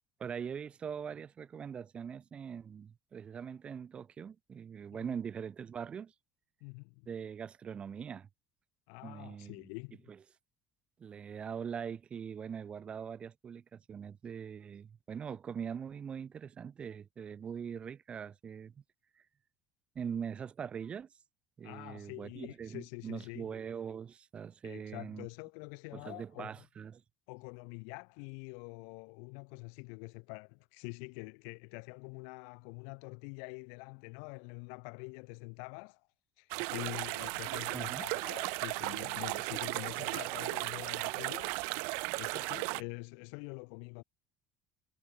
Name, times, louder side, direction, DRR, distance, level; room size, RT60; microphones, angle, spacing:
voice 1, 0.2-6.1 7.1-8.3 9.0-9.6 10.1-10.2 11.0-18.7 19.9-21.1 21.6-25.3 25.9-27.0 37.7-38.0, right 7 dB, 25° right, 2.5 m, -42 dB
voice 2, 6.6-7.1 8.9-10.1 21.6-23.5 24.6-26.5 27.3-36.0 36.4-41.6 42.1-44.0, left 40 dB or more, 85° left, 2.2 m, -46 dB
sound 1, 36.5-42.8, right 34 dB, 80° right, 2.1 m, -36 dB
cardioid pair, 150°, 4 cm